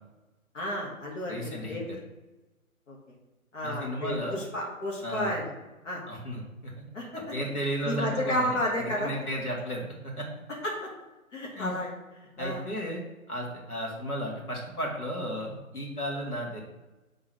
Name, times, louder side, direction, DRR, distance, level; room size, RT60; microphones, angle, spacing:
voice 1, 0.5-1.9 2.9-3.0 3.5-5.5 5.8-6.0 6.9-7.0 7.9-9.1 10.6-10.8 11.3-12.6, left 1 dB, 55° left, -3 dB, 1.9 m, -32 dB
voice 2, 1.3-2.0 3.6-4.4 5.0-5.4 6.1-6.7 7.1-10.3 11.5-11.7 12.4-13.0 13.3-16.6, equal, 85° left, -2 dB, 2.1 m, -34 dB
5.8 x 3.7 x 6.0 m, 1.1 s
figure-of-eight pair, 145°, 43 cm